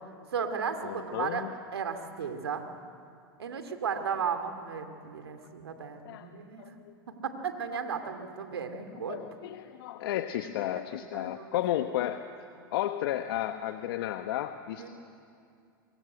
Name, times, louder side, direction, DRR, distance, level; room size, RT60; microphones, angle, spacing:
voice 1, 0.3-1.4 1.7-2.6 3.4-6.7 7.2-9.2 11.1-11.5 14.8-14.9, right 6 dB, 90° right, 6 dB, 2.5 m, -34 dB
voice 2, 0.8-1.5 6.0-6.3 6.6-6.9 7.7-7.8 9.1-12.2 12.7-14.9, left 12 dB, 70° left, 8 dB, 1.1 m, -33 dB
26.0 x 23.0 x 7.9 m, 2.5 s
hypercardioid pair, 100°, 13 cm